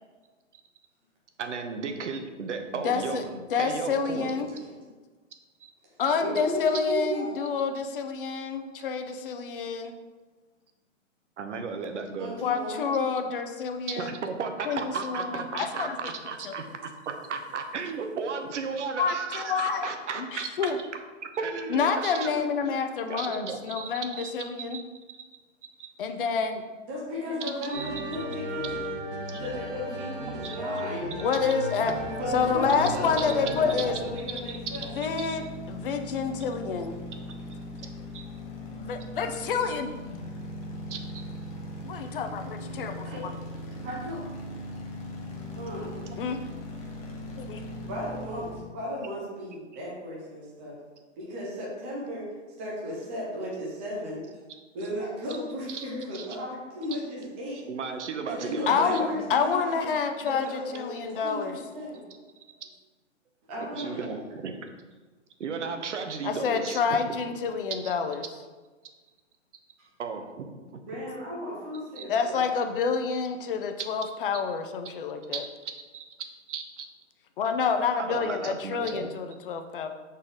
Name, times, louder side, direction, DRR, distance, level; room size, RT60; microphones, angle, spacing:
voice 1, 1.4-3.3 3.6-4.3 5.6-5.7 11.4-12.3 13.9-20.7 21.3-22.5 23.1-24.3 24.7-24.8 25.8-25.9 27.4-27.9 29.3-29.4 30.4-30.6 31.3-31.5 33.2-33.3 33.8-33.9 34.3-34.9 35.2-35.4 38.1-38.3 40.9-41.2 55.7-55.8 56.1-56.3 57.7-59.2 63.7-64.5 65.4-67.0 67.8-67.9 70.0-70.8 72.0-72.1 75.3-76.0 76.5-76.9 78.0-79.1, right 5 dB, 70° right, 5 dB, 1.0 m, -35 dB
voice 2, 2.8-4.5 6.0-9.9 12.4-14.2 14.7-16.0 16.4-16.5 19.0-20.8 21.7-24.8 26.0-26.6 31.0-31.9 32.3-34.0 35.0-35.4 35.7-37.0 38.8-39.9 41.8-43.3 46.2-46.4 47.4-47.6 58.7-61.6 66.2-68.2 72.1-75.4 77.4-79.9, left 5 dB, 45° left, 6 dB, 0.6 m, -28 dB
voice 3, 6.2-7.5 12.1-12.9 26.9-28.7 29.2-31.1 32.2-35.0 43.0-43.2 43.8-44.2 45.5-46.0 47.8-48.4 48.7-50.8 51.2-52.2 52.6-54.2 54.7-57.7 58.2-59.8 60.2-62.0 63.5-64.1 69.8-69.9 70.9-72.4, equal, 10° right, -4 dB, 0.4 m, -35 dB
sound 1, 27.7-33.9, right 1 dB, 45° right, 1.3 m, -35 dB
sound 2, 31.8-48.6, left 1 dB, 30° left, 0.9 m, -39 dB
6.4 x 4.1 x 3.8 m, 1.3 s
hypercardioid pair, 145°, 37 cm